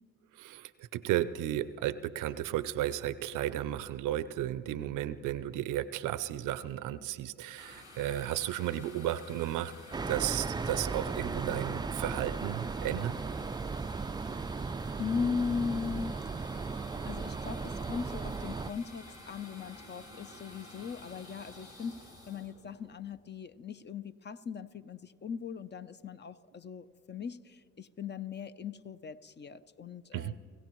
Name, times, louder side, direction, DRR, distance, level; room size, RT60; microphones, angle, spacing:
voice 1, 0.4-9.7 10.1-13.1 30.1-30.3, right 13 dB, 80° right, 16 dB, 0.6 m, -34 dB
sound 1, 7.6-23.3, left 2 dB, 70° left, 5.7 m, -51 dB
sound 2, 9.9-18.7, right 4 dB, 15° right, 0.3 m, -36 dB
voice 2, 15.0-16.2 17.1-30.4, left 6 dB, 35° left, 13 dB, 0.6 m, -38 dB
29.5 x 16.0 x 3.1 m, 2.3 s
supercardioid pair, 50°, 31 cm